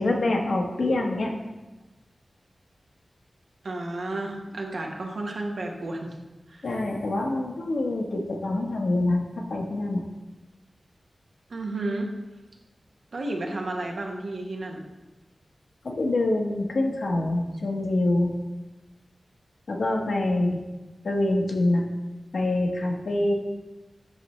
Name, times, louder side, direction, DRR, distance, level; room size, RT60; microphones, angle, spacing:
voice 1, 0.0-1.3 6.6-10.0 15.8-18.3 19.7-20.6 21.0-21.8 22.3-23.3, left 2 dB, 75° left, 1 dB, 1.0 m, -25 dB
voice 2, 3.6-6.1 6.5-6.7 11.5-12.1 13.1-14.8, right 2 dB, 75° right, 1 dB, 1.1 m, -32 dB
8.3 x 5.8 x 3.2 m, 1.1 s
wide cardioid pair, 85°, 0 cm